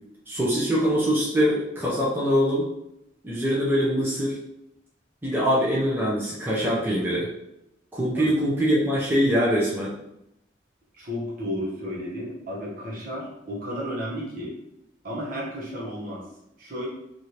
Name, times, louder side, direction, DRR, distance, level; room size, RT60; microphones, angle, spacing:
voice 1, 0.3-2.7 3.2-4.4 5.2-7.3 7.9-9.9, equal, 10° right, -7 dB, 0.6 m, -23 dB
voice 2, 8.1-8.5 10.9-14.6 15.0-16.2 16.6-16.9, equal, 50° right, -5 dB, 1.1 m, -33 dB
3.3 x 2.5 x 2.8 m, 0.83 s
head